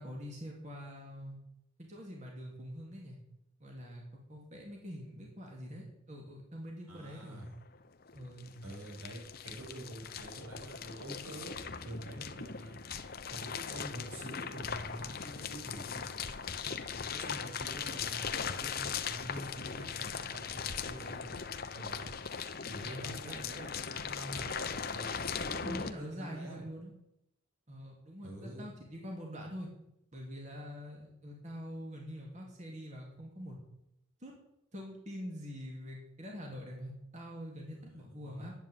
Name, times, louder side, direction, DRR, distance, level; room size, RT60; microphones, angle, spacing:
voice 1, 0.0-1.4 1.9-3.2 3.6-4.0 4.3-7.4 8.1-8.6 22.8-23.7 25.4-26.9 27.7-29.7 30.1-33.6 34.2-34.3 34.7-38.5, equal, 35° right, -1 dB, 2.8 m, -45 dB
voice 2, 6.9-7.5 8.6-12.8 13.3-16.0 16.6-21.5 21.7-22.1 22.7-24.7 24.9-25.1 25.5-26.6 28.2-28.7 37.8-38.5, right 1 dB, 85° right, -1 dB, 5.6 m, -46 dB
sound 1, 7.2-7.3 7.5-25.9, left 6 dB, 45° left, 0.8 m, -39 dB
11.0 x 8.6 x 9.2 m, 0.83 s
head